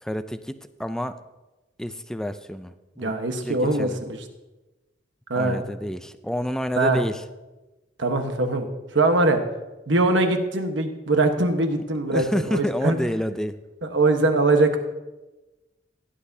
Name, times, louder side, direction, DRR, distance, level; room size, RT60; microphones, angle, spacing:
voice 1, 0.0-1.2 1.8-3.1 3.4-4.0 5.4-7.2 12.1-13.6, equal, 5° left, 11 dB, 0.4 m, -29 dB
voice 2, 3.0-4.2 5.3-5.6 6.8-7.0 8.0-8.7 8.9-9.4 9.9-13.0 13.8-14.8, right 2 dB, 75° right, 6 dB, 1.2 m, -22 dB
16.5 x 10.0 x 2.8 m, 1.1 s
head